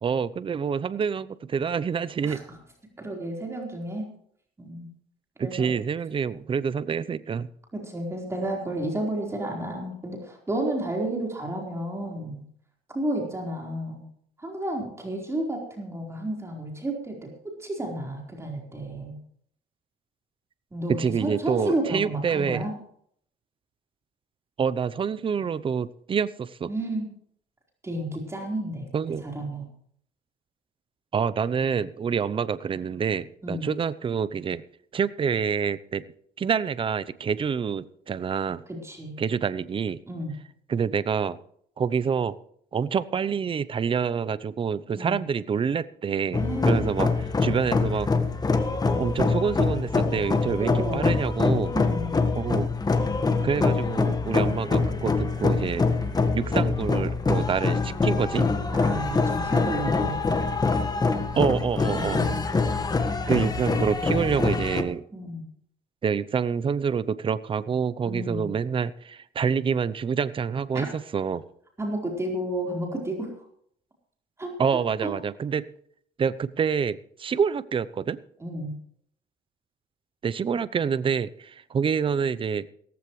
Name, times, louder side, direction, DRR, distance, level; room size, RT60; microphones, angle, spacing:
voice 1, 0.0-2.4 5.4-7.5 20.9-22.6 24.6-26.7 28.9-29.2 31.1-34.6 34.9-36.0 36.4-38.6 39.2-40.0 40.7-41.4 41.8-42.4 42.7-47.1 47.4-48.1 48.9-51.7 52.4-52.7 53.4-55.9 56.3-58.5 61.3-62.2 63.3-65.0 66.0-71.4 74.6-75.7 76.2-78.2 80.2-82.7, right 6 dB, 30° right, 17 dB, 0.7 m, -27 dB
voice 2, 2.2-2.6 3.0-4.0 4.6-4.9 5.4-5.7 7.7-12.4 12.9-14.0 14.4-19.2 20.7-22.7 26.7-27.1 27.8-28.9 29.2-29.7 33.4-33.7 38.8-39.2 40.1-40.4 45.0-45.2 46.3-46.9 50.6-51.1 51.7-52.1 58.7-60.2 61.9-62.4 65.1-65.4 68.0-68.5 70.7-70.9 71.8-73.3 74.4-75.1 78.4-78.7, right 1 dB, 15° right, -1 dB, 4.3 m, -31 dB
sound 1, 46.3-64.8, left 4 dB, 25° left, 1.6 m, -25 dB
17.0 x 15.0 x 3.2 m, 0.64 s
cardioid pair, 110°, 17 cm